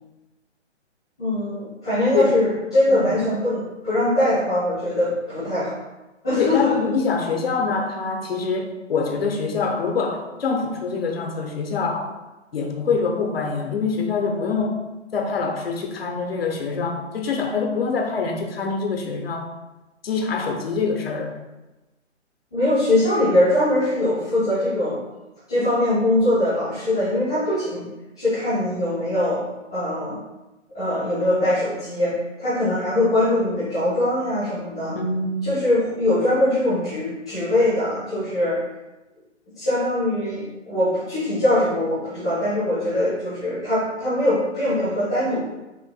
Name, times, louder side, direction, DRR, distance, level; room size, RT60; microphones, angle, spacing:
voice 1, 1.2-5.8 6.2-6.8 22.5-25.0 25.5-27.9 28.2-29.5 29.7-30.2 30.7-35.0 35.4-38.6 39.5-45.4, left 1 dB, 5° left, -19 dB, 0.4 m, -22 dB
voice 2, 6.4-12.1 12.5-14.8 15.1-19.5 20.0-21.3 34.9-35.5, left 4 dB, 50° left, 3 dB, 0.8 m, -25 dB
5.6 x 2.5 x 2.2 m, 1.1 s
figure-of-eight pair, 135°, 37 cm